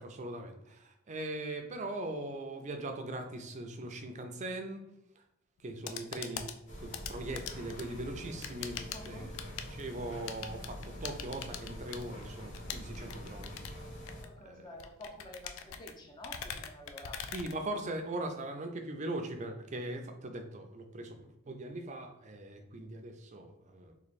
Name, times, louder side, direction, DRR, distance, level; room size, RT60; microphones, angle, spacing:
voice 1, 0.0-4.8 5.6-6.5 6.8-9.4 9.7-13.6 14.4-14.7 17.3-23.9, right 1 dB, 35° right, 5 dB, 0.5 m, -40 dB
sound 1, 5.6-18.2, left 8 dB, 80° left, 0.4 m, -44 dB
sound 2, 6.7-14.2, equal, 40° left, 0.9 m, -45 dB
voice 2, 8.8-9.4 14.2-17.2, left 1 dB, 20° left, 1 dB, 0.5 m, -50 dB
3.1 x 2.6 x 4.1 m, 0.85 s
head